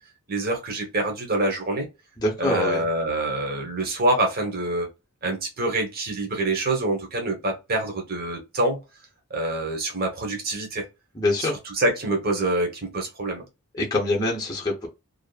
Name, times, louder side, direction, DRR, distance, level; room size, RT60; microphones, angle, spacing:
voice 1, 0.3-1.9 2.4-4.9 5.2-8.8 9.3-10.8 11.4-13.4, right 2 dB, 45° right, 0.9 m, -26 dB
voice 2, 2.2-2.8 11.1-11.6 13.7-14.9, left 2 dB, 20° left, 0.7 m, -25 dB
2.6 x 2.5 x 2.3 m
head